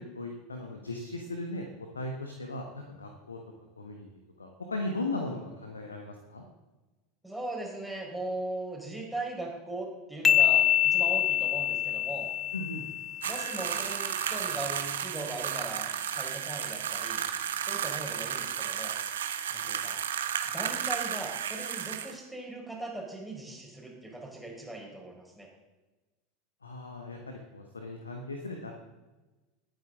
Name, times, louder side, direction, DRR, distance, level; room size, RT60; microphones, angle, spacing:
voice 1, 0.0-1.7 1.9-3.4 3.8-6.4 12.5-12.8 26.6-28.7, left 2 dB, 85° left, 3 dB, 1.3 m, -37 dB
voice 2, 7.2-12.3 13.2-17.2 17.7-19.0 19.5-20.0 20.4-25.5, right 2 dB, ahead, -2 dB, 4.5 m, -39 dB
sound 1, 10.2-13.8, left 10 dB, 25° left, 0.4 m, -26 dB
sound 2, 13.2-22.2, right 9 dB, 70° right, 1.0 m, -33 dB
21.0 x 9.2 x 3.7 m, 1.2 s
figure-of-eight pair, 80°, 0 cm